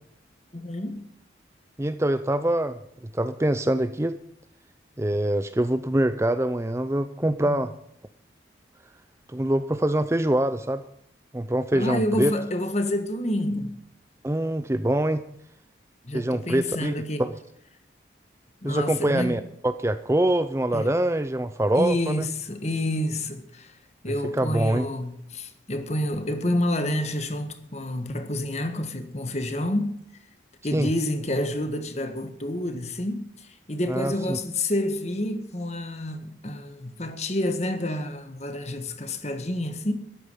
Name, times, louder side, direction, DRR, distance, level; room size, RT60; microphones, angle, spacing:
voice 1, 0.5-1.0 7.5-7.6 11.7-13.8 16.0-17.2 18.6-19.4 20.7-20.9 21.7-23.7 24.0-30.0 30.6-33.3 33.7-39.9, left 1 dB, 35° left, 1.5 m, -28 dB
voice 2, 1.8-2.8 3.1-4.2 5.0-7.7 9.3-10.8 11.3-12.3 14.2-15.2 16.1-16.9 17.2-17.3 18.6-22.3 24.1-24.9 30.7-30.9 33.9-34.4, right 1 dB, 15° right, 0.5 m, -24 dB
13.5 x 11.5 x 5.6 m
head